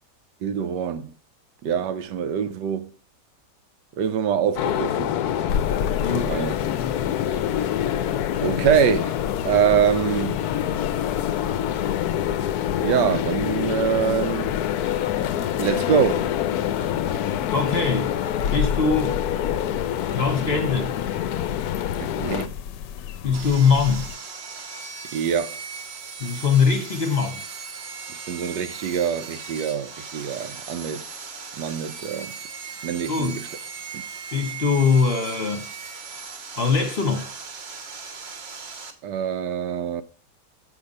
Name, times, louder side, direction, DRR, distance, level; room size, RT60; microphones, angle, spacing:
voice 1, 0.4-1.1 1.6-2.9 3.9-5.2 6.3-6.5 7.3-7.4 8.4-9.2 9.4-10.4 12.8-14.6 15.6-16.3 22.0-22.5 25.1-25.6 28.1-31.1 31.5-32.3 32.8-33.5 33.9-34.0 39.0-40.0, right 8 dB, 80° right, 1.3 m, -24 dB
sound 1, 4.6-22.5, left 10 dB, 70° left, 1.0 m, -26 dB
sound 2, 5.5-24.1, left 8 dB, 85° left, 1.3 m, -34 dB
voice 2, 6.0-6.4 17.5-18.2 18.5-19.2 20.1-21.0 23.2-24.1 26.2-27.4 33.1-33.4 34.3-35.7 36.6-37.3, left 5 dB, 40° left, 1.1 m, -22 dB
Sawing, 23.3-38.9, right 5 dB, 45° right, 1.1 m, -38 dB
7.2 x 5.1 x 5.3 m
omnidirectional pair, 1.9 m